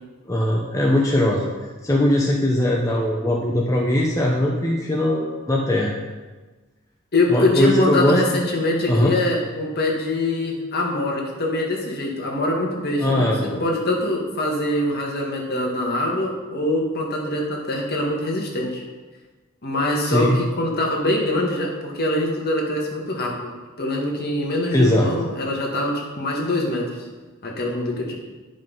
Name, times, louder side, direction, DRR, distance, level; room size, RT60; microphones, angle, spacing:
voice 1, 0.3-1.4 1.8-5.9 7.3-8.2 8.9-9.1 13.0-13.6 20.0-20.4 24.7-25.1, left 1 dB, 15° left, -2 dB, 0.8 m, -20 dB
voice 2, 7.1-13.3 13.6-18.8 19.6-23.5 23.8-26.9 27.4-28.1, left 1 dB, 45° left, -1 dB, 1.8 m, -23 dB
9.7 x 5.4 x 5.5 m, 1.3 s
head